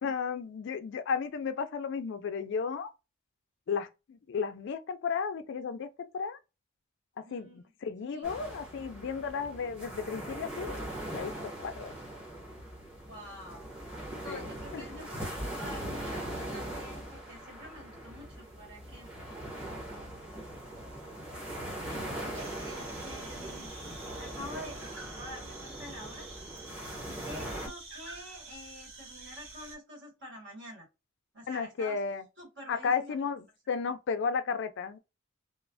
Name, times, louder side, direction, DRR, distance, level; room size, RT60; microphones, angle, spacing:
voice 1, 0.0-2.9 3.7-6.4 7.2-10.8 11.1-11.3 11.6-11.9 14.3-15.1 31.5-32.2 32.7-35.0, left 5 dB, 60° left, 0.4 m, -34 dB
voice 2, 7.2-7.6 8.1-8.3 13.1-13.7 14.2-19.1 21.8-23.7 24.2-26.3 27.1-30.9 31.3-32.0 32.4-33.2, equal, 60° right, 1.5 m, -47 dB
sound 1, 8.2-27.7, right 1 dB, 5° right, 0.8 m, -41 dB
sound 2, 22.4-29.8, right 3 dB, 75° right, 1.1 m, -48 dB
3.0 x 2.0 x 2.5 m
head